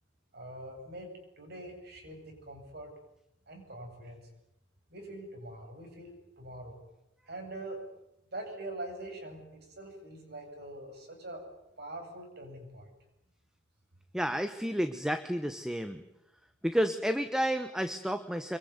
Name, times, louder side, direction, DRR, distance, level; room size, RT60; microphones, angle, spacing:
voice 1, 0.3-2.9 3.5-4.3 4.9-6.8 7.3-7.8 8.3-11.5 11.8-12.9, right 1 dB, 55° right, 3 dB, 7.8 m, -44 dB
voice 2, 14.1-16.0 16.6-18.6, equal, 5° right, 9 dB, 1.0 m, -31 dB
25.0 x 23.0 x 9.6 m, 0.84 s
head